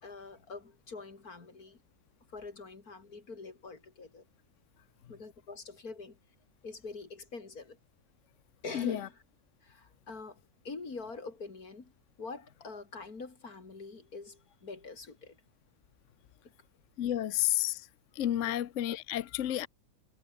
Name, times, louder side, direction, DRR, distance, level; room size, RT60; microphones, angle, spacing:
voice 1, 0.0-1.8 2.3-4.3 5.1-6.2 6.6-7.8 8.6-9.2 9.6-10.4 10.6-11.9 12.2-15.4 18.4-18.5, left 4 dB, 90° left, 3.7 m, -45 dB
voice 2, 8.7-9.1 17.0-17.9 18.1-19.7, left 13 dB, 60° left, 1.0 m, -31 dB
omnidirectional pair, 1.5 m